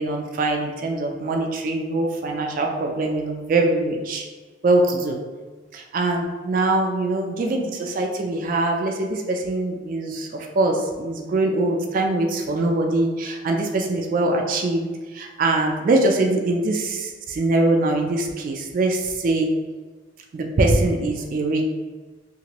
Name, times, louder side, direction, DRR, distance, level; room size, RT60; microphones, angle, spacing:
voice 1, 0.0-4.2 4.6-5.2 5.7-19.5 20.3-21.6, right 2 dB, 45° right, 2 dB, 0.3 m, -23 dB
2.9 x 2.5 x 2.8 m, 1.4 s
head